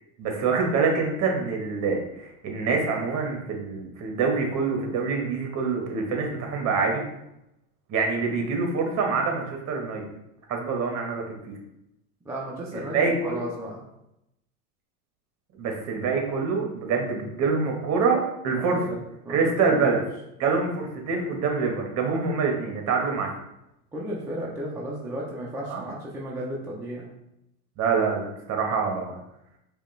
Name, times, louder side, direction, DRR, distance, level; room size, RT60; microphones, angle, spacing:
voice 1, 0.2-7.0 7.9-10.0 10.5-11.5 12.7-13.4 15.6-19.0 19.3-20.0 20.4-23.3 25.7-25.8 27.8-29.1, right 4 dB, 35° right, 2 dB, 1.1 m, -26 dB
voice 2, 12.3-13.9 18.5-19.0 19.2-20.0 23.9-27.1, right 1 dB, 5° right, -5 dB, 0.3 m, -34 dB
4.9 x 2.4 x 3.1 m, 0.84 s
hypercardioid pair, 110°, 45 cm